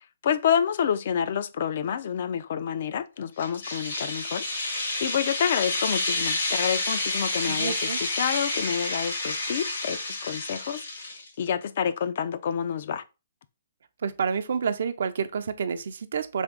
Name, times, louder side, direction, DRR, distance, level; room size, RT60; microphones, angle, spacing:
voice 1, 0.2-10.8 11.4-13.0, left 8 dB, 55° left, 0.3 m, -28 dB
sound 1, 3.4-11.3, left 2 dB, 80° left, 1.6 m, -29 dB
voice 2, 7.5-8.0 14.0-16.4, right 6 dB, 70° right, 0.4 m, -29 dB
3.5 x 2.7 x 3.7 m
hypercardioid pair, 155°, 0 cm